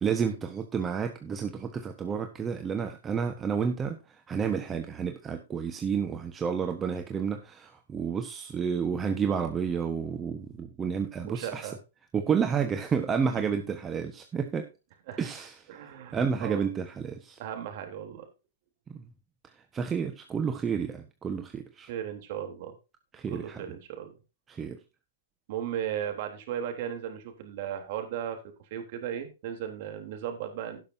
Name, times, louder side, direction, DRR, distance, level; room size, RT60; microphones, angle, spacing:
voice 1, 0.0-4.0 4.3-11.7 12.1-14.7 15.2-15.5 16.1-17.4 19.7-21.9 23.1-23.6 24.5-24.8, right 6 dB, 20° right, 6 dB, 1.3 m, -30 dB
voice 2, 11.2-11.8 13.4-13.5 15.1-15.3 15.7-16.7 17.4-18.3 21.9-22.7 23.3-24.2 25.5-30.8, right 9 dB, 50° right, 5 dB, 3.4 m, -36 dB
17.5 x 6.6 x 2.8 m, 0.28 s
hypercardioid pair, 135°, 0 cm